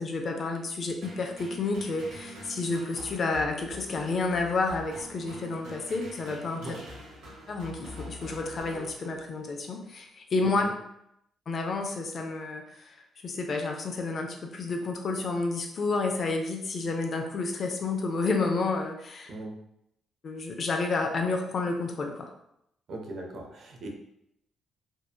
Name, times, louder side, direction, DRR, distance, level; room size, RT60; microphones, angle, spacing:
voice 1, 0.0-6.8 7.5-10.7 11.5-12.9 13.2-19.3 20.2-22.3, left 3 dB, 50° left, 3 dB, 0.4 m, -30 dB
sound 1, 1.0-9.5, equal, 85° right, 1.0 m, -45 dB
voice 2, 22.9-23.9, right 2 dB, 60° right, 2 dB, 0.5 m, -39 dB
2.7 x 2.1 x 2.3 m, 0.77 s
cardioid pair, 90°, 0 cm